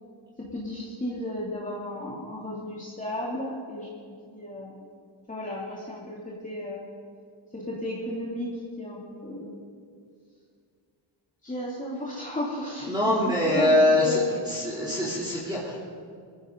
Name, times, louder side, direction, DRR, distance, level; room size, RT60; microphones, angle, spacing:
voice 1, 0.4-4.9 5.3-6.9 7.5-9.5 11.4-15.1, left 1 dB, 15° left, -6 dB, 2.8 m, -34 dB
voice 2, 12.8-15.8, left 1 dB, 10° right, -7 dB, 3.3 m, -23 dB
19.0 x 15.0 x 3.9 m, 2.2 s
cardioid pair, 90°, 49 cm